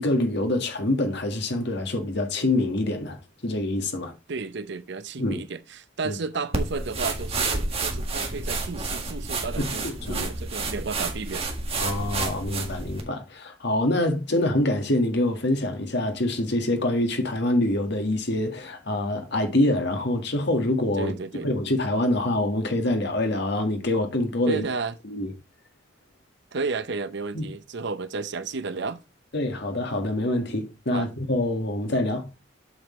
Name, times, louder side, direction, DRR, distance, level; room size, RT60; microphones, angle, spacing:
voice 1, 0.0-3.2 3.4-4.1 5.2-5.4 6.0-6.2 9.6-10.3 11.8-21.1 21.4-24.6 25.0-25.3 27.3-27.5 29.3-32.3, left 1 dB, 60° left, 1.7 m, -25 dB
voice 2, 4.3-11.5 14.3-14.4 20.9-21.5 24.5-24.9 26.5-29.0 30.9-31.1, right 4 dB, 65° right, 0.7 m, -32 dB
sound 1, 6.5-13.0, right 3 dB, 30° right, 1.7 m, -30 dB
7.8 x 6.3 x 3.1 m
head